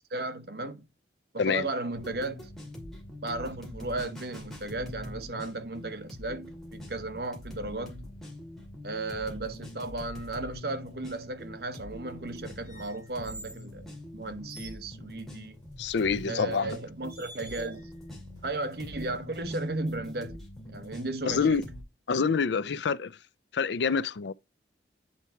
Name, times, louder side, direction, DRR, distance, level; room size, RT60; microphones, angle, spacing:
voice 1, 0.1-0.8 1.3-2.5 3.2-8.0 8.8-15.6 16.3-17.9 18.4-20.4 20.7-21.6, right 2 dB, 60° right, 1.0 m, -35 dB
sound 1, 1.9-21.8, left 1 dB, ahead, 2.3 m, -44 dB
sound 2, 12.6-13.7 14.3-14.8 16.2-16.4 17.1-17.9 18.4-19.2, right 2 dB, 25° right, 3.8 m, -49 dB
voice 2, 15.8-16.7 21.3-21.6 22.1-23.2 23.5-24.3, left 5 dB, 80° left, 0.5 m, -26 dB
8.7 x 4.6 x 4.3 m
head